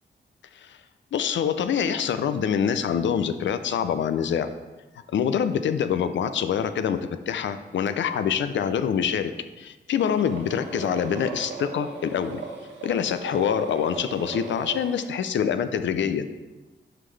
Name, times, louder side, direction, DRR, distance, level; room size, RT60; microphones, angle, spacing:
voice 1, 1.1-4.5 5.1-7.0 7.3-9.3 9.6-12.4 12.8-16.2, left 8 dB, 85° left, 10 dB, 0.5 m, -25 dB
sound 1, 9.9-15.1, right 4 dB, 85° right, 1.1 m, -38 dB
11.5 x 3.9 x 3.3 m, 1.2 s
cardioid pair, 90°, 19 cm